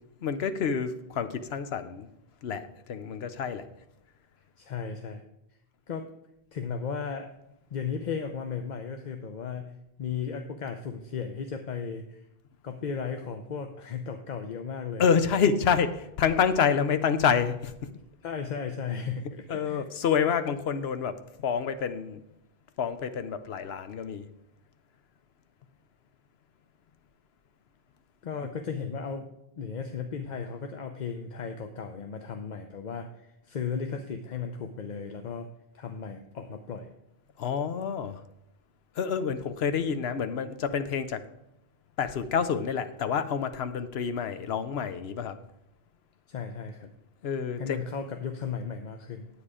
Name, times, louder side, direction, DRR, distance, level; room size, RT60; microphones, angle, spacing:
voice 1, 0.2-2.1 2.4-3.7 15.0-17.9 19.5-22.2 22.8-24.3 37.4-38.2 39.0-41.2 42.0-45.4 47.2-47.8, left 7 dB, 80° left, 11 dB, 1.0 m, -28 dB
voice 2, 4.6-5.2 5.9-6.1 6.5-7.3 7.7-12.3 12.6-15.1 18.2-19.8 28.2-29.3 29.6-35.5 35.7-36.9 46.3-46.9 47.5-49.3, left 6 dB, 50° left, 6 dB, 0.7 m, -35 dB
9.8 x 8.3 x 4.9 m, 0.84 s
omnidirectional pair, 1.1 m